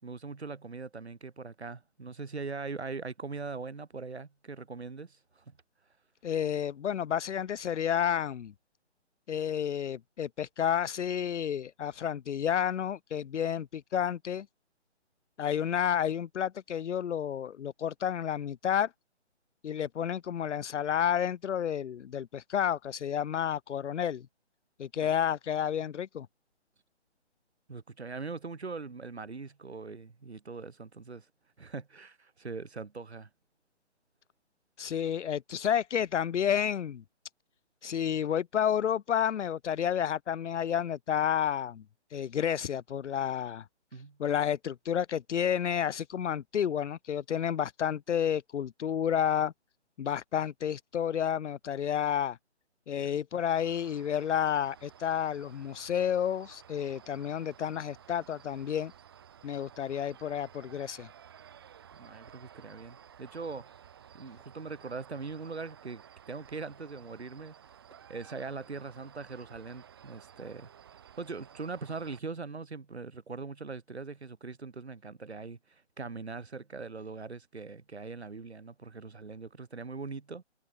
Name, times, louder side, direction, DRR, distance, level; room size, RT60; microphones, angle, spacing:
voice 1, 0.0-5.5 24.9-25.1 27.7-31.3 31.6-33.3 43.9-44.2 53.0-53.4 61.9-63.7 64.1-67.5 68.1-70.7 71.2-80.4, right 4 dB, 65° right, 7.8 m, -41 dB
voice 2, 6.2-8.5 9.3-14.5 15.4-18.9 19.6-24.3 24.8-26.3 34.8-37.0 37.8-41.8 42.1-43.7 44.2-49.5 50.0-52.4 52.9-58.9 59.4-61.1, left 9 dB, 80° left, 0.6 m, -30 dB
sound 1, 53.5-72.2, right 9 dB, 20° right, 5.1 m, -54 dB
hypercardioid pair, 180°, 35 cm